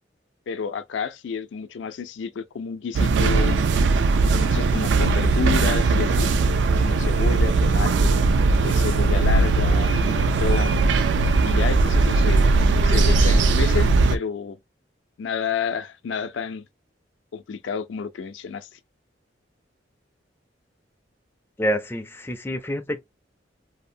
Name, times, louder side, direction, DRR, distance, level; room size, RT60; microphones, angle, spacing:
voice 1, 0.5-3.6 4.4-6.3 6.8-8.2 8.6-10.8 11.4-12.5 12.8-14.6 15.2-16.6 17.3-18.7, left 6 dB, 80° left, 0.4 m, -30 dB
sound 1, 2.9-14.2, right 3 dB, 70° right, 0.3 m, -19 dB
voice 2, 21.6-23.0, equal, 10° left, 0.3 m, -27 dB
2.7 x 2.0 x 2.5 m
head